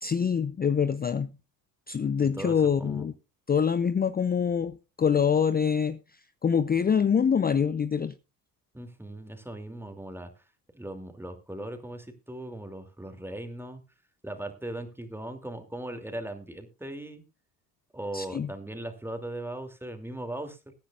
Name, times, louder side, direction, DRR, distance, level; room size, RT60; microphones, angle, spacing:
voice 1, 0.0-1.3 1.9-3.1 3.5-6.0 6.4-8.1 18.1-18.5, left 7 dB, 20° left, 0.6 m, -25 dB
voice 2, 2.4-3.1 8.7-10.3 10.7-13.8 14.2-17.2 17.9-20.7, right 1 dB, 5° right, 2.8 m, -38 dB
21.5 x 10.0 x 2.5 m
hypercardioid pair, 60°, 49 cm